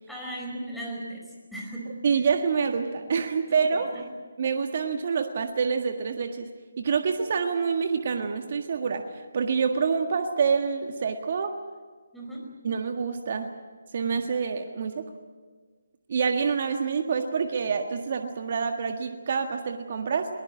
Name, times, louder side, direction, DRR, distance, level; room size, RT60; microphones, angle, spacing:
voice 1, 0.1-1.9 3.0-3.1 3.7-4.0 12.1-12.5, right 1 dB, ahead, -4 dB, 5.0 m, -37 dB
voice 2, 2.0-3.9 4.4-6.5 6.8-11.5 12.6-13.5 13.9-15.1 16.1-20.3, right 5 dB, 45° right, 5 dB, 1.7 m, -27 dB
22.5 x 20.0 x 8.4 m, 1.4 s
figure-of-eight pair, 150°, 0 cm